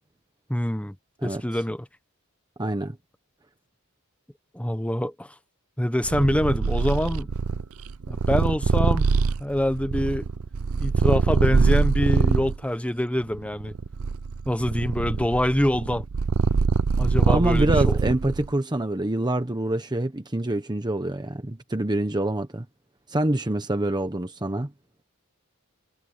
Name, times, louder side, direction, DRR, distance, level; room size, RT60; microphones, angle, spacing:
voice 1, 0.5-0.9 1.2-1.9 4.5-5.3 5.8-7.3 8.1-9.0 9.4-10.3 10.8-13.7 14.5-16.0 17.0-18.0, left 1 dB, 5° left, 1.0 m, -25 dB
voice 2, 2.6-3.0 17.3-22.7 23.1-24.7, right 1 dB, 20° right, 1.1 m, -26 dB
Purr, 6.0-12.6 13.2-18.5, right 4 dB, 70° right, 0.5 m, -23 dB
head